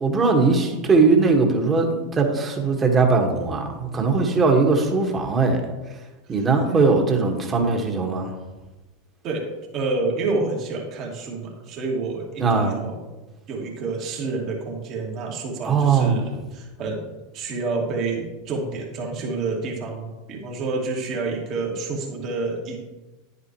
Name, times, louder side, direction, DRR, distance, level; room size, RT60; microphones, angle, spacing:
voice 1, 0.0-5.6 6.3-8.3 12.4-12.8 15.7-16.2, right 4 dB, 25° right, 2 dB, 1.8 m, -20 dB
voice 2, 9.7-13.1 13.5-22.8, right 3 dB, 45° right, -1 dB, 2.3 m, -28 dB
10.5 x 8.4 x 3.2 m, 1.1 s
figure-of-eight pair, 85°, 0 cm